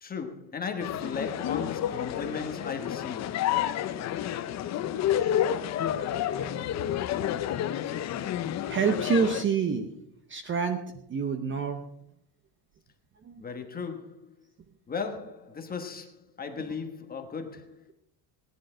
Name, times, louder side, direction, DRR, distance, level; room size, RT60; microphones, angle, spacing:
voice 1, 0.0-3.6 13.4-14.3 14.9-17.9, left 5 dB, 20° left, 1.2 m, -36 dB
sound 1, 0.8-9.4, left 11 dB, 35° left, 0.6 m, -30 dB
voice 2, 6.4-7.0 8.0-8.3 8.7-9.9 10.3-10.8 11.1-11.9 13.2-13.4, right 5 dB, 25° right, 0.7 m, -28 dB
17.5 x 10.5 x 4.3 m
cardioid pair, 165°, 48 cm